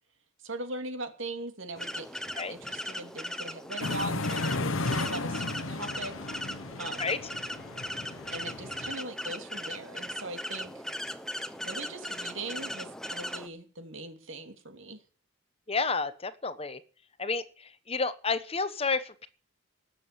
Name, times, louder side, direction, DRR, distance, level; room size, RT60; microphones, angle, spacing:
voice 1, 0.4-2.2 2.5-6.1 6.8-7.1 8.3-10.8 11.6-15.0, right 2 dB, 65° right, 7 dB, 3.0 m, -40 dB
sound 1, 1.8-13.5, equal, 5° left, 0.9 m, -38 dB
sound 2, 3.8-8.9, left 2 dB, 70° left, 1.0 m, -34 dB
voice 2, 15.7-16.8 17.2-17.4 17.9-19.3, left 4 dB, 25° left, 13 dB, 1.0 m, -30 dB
19.0 x 7.6 x 9.0 m, 0.42 s
head